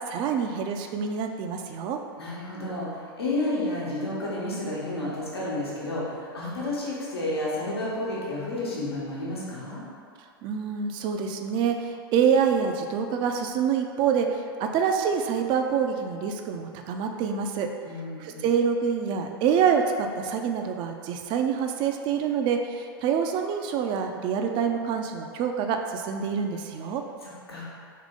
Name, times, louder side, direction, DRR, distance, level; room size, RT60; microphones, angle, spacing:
voice 1, 0.0-2.0 10.4-17.7 18.2-27.0, right 7 dB, 40° right, 4 dB, 0.4 m, -26 dB
voice 2, 2.2-9.8 17.8-18.4 27.2-27.6, left 1 dB, 90° left, -6 dB, 1.1 m, -31 dB
3.7 x 3.1 x 3.6 m, 2.3 s
hypercardioid pair, 105°, 13 cm